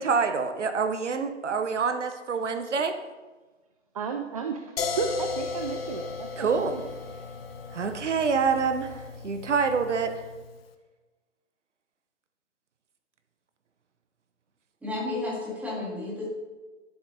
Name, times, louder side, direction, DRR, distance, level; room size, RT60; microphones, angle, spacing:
voice 1, 0.0-2.9 6.4-6.7 7.7-10.2, right 5 dB, 70° right, 8 dB, 0.8 m, -26 dB
voice 2, 3.9-4.6 5.0-6.9, right 5 dB, 30° right, 5 dB, 0.4 m, -33 dB
sound 1, 4.8-10.6, left 5 dB, 50° left, 0.9 m, -36 dB
voice 3, 14.8-16.2, left 2 dB, 5° right, -5 dB, 1.9 m, -32 dB
11.5 x 7.1 x 2.7 m, 1.2 s
figure-of-eight pair, 130°, 38 cm